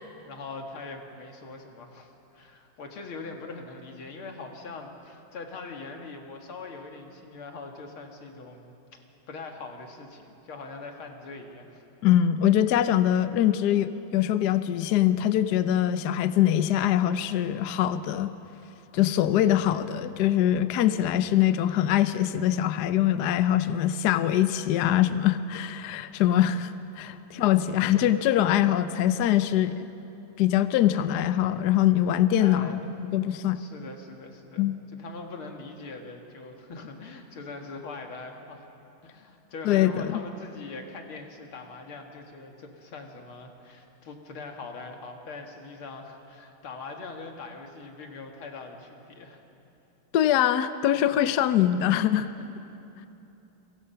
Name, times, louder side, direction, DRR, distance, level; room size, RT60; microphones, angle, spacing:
voice 1, 0.2-8.7 9.3-11.8 27.9-28.1 32.4-32.9 33.5-34.7 34.9-38.7 39.0-49.4, left 3 dB, 90° left, 3 dB, 2.8 m, -42 dB
voice 2, 12.0-18.3 18.9-29.8 30.4-33.6 34.6-34.8 39.6-40.2 50.1-52.3, left 11 dB, 65° left, 12 dB, 1.1 m, -23 dB
29.0 x 23.5 x 5.7 m, 3.0 s
omnidirectional pair, 2.3 m